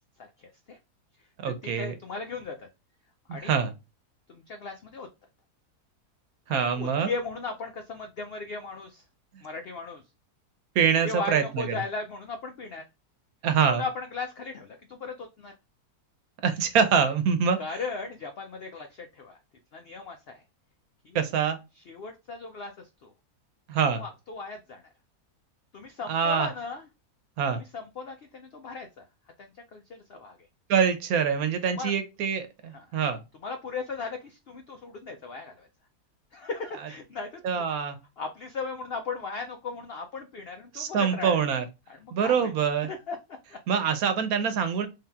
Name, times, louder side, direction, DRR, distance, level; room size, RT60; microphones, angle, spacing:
voice 1, 0.2-0.8 1.6-2.7 3.3-3.6 4.3-5.1 6.5-9.0 9.4-10.0 11.0-12.9 13.7-15.5 17.6-19.4 19.7-20.4 21.0-21.3 21.8-23.1 24.0-24.8 25.7-26.8 27.6-29.0 29.4-30.4 31.7-31.9 32.7-33.0 33.4-35.7 36.3-37.8 38.2-41.4 41.9-42.5 42.9-43.6, left 4 dB, 75° left, 0.5 m, -37 dB
voice 2, 1.4-1.9 3.3-3.7 6.5-7.1 10.7-11.8 13.4-13.8 16.4-17.6 21.1-21.6 23.7-24.0 26.1-26.5 27.4-27.6 30.7-33.2 37.4-38.0 40.7-41.6 42.1-42.9 43.7-44.9, right 7 dB, 70° right, 1.1 m, -25 dB
3.4 x 2.8 x 3.4 m
omnidirectional pair, 1.7 m